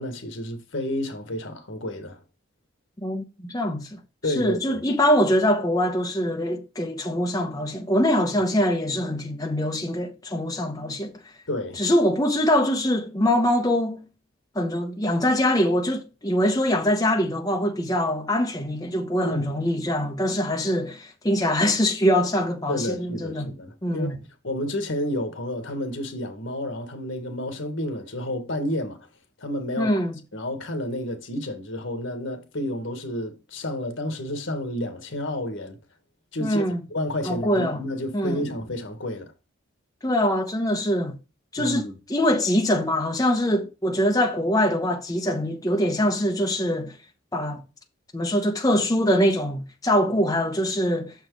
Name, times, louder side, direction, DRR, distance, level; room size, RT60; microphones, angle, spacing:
voice 1, 0.0-2.2 4.2-4.8 11.5-11.8 19.2-19.5 22.7-24.1 24.4-29.0 29.4-29.9 30.3-35.8 36.3-39.3 41.6-41.9, left 1 dB, 80° left, 1.5 m, -30 dB
voice 2, 3.0-4.0 4.3-11.1 11.8-14.0 14.5-23.5 23.8-24.2 29.8-30.1 36.4-36.8 37.2-37.8 38.1-38.5 40.0-41.2 41.5-41.8 42.1-46.9 47.3-47.6 48.1-51.1, equal, 20° left, 1.0 m, -23 dB
6.6 x 4.6 x 4.6 m
head